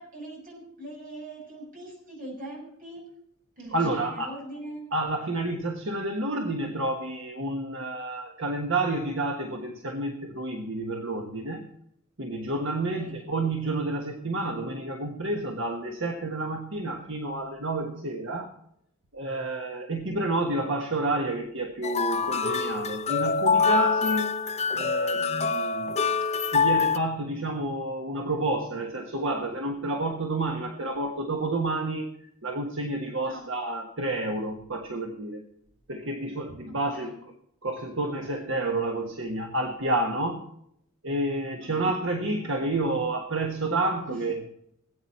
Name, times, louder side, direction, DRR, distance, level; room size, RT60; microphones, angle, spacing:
voice 1, 0.0-3.0 3.6-4.9 12.9-13.3 33.2-33.5 36.7-37.2 41.6-41.9 44.1-44.2, right 1 dB, 40° right, -1 dB, 6.3 m, -42 dB
voice 2, 3.7-4.3 4.9-11.7 12.2-18.5 19.1-24.3 24.7-26.0 26.5-35.5 35.9-37.1 37.6-40.5 41.0-44.4, right 2 dB, 60° right, 3 dB, 1.3 m, -30 dB
sound 1, 21.8-27.0, left 5 dB, 30° left, 0.7 m, -25 dB
18.5 x 8.9 x 4.4 m, 0.72 s
head